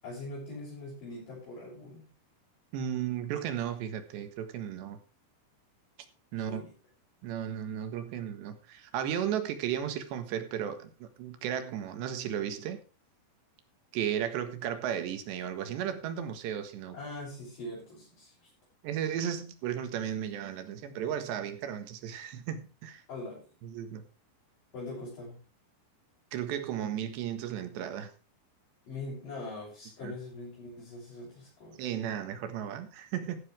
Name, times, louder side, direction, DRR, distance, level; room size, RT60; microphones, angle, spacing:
voice 1, 0.0-2.1 6.4-6.7 16.9-18.5 23.1-23.5 24.7-25.4 28.9-31.9, left 2 dB, 50° left, -5 dB, 8.4 m, -42 dB
voice 2, 2.7-5.0 6.3-6.6 7.2-12.8 13.9-17.0 18.8-23.0 23.6-24.0 26.3-28.1 30.0-30.1 31.8-33.4, right 9 dB, 80° right, 9 dB, 3.8 m, -34 dB
14.5 x 12.5 x 3.4 m, 0.33 s
omnidirectional pair, 4.9 m